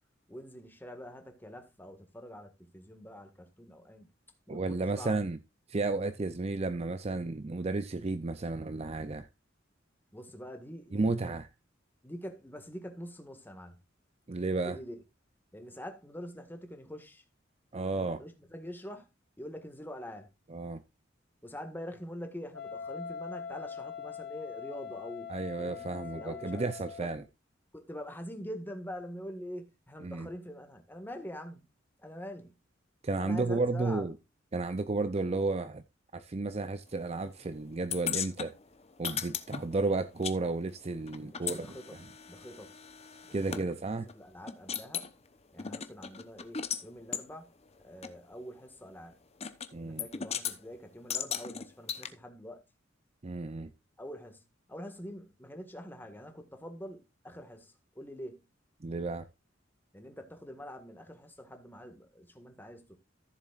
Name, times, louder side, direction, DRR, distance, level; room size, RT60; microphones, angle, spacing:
voice 1, 0.3-4.1 4.5-5.2 10.1-11.3 12.0-13.8 14.6-15.0 15.5-17.2 17.8-19.1 19.4-20.3 21.4-26.6 27.0-27.3 27.7-31.7 32.0-32.6 33.2-34.1 41.2-42.0 42.3-42.7 43.3-43.6 44.1-45.1 45.5-49.2 49.8-52.6 54.0-54.4 54.7-58.4 59.9-63.0, equal, 10° left, 1.7 m, -45 dB
voice 2, 4.5-5.4 5.7-9.3 10.9-11.5 14.3-14.8 17.7-18.2 20.5-20.8 25.3-27.2 30.0-30.3 33.0-34.1 34.5-35.8 36.1-38.5 39.0-41.8 43.3-44.1 49.7-50.0 53.2-53.7 58.8-59.3, right 3 dB, 35° right, 0.5 m, -32 dB
Wind instrument woodwind instrument, 22.5-27.2, left 7 dB, 55° left, 3.2 m, -42 dB
sound 1, 37.9-40.4 40.6-43.6 44.1-44.2 44.5-45.1 45.6-46.8 47.1-47.3 48.0-48.1 49.4-49.7 50.0-50.6 51.1-52.1, left 8 dB, 35° left, 0.9 m, -37 dB
14.0 x 7.4 x 2.4 m
head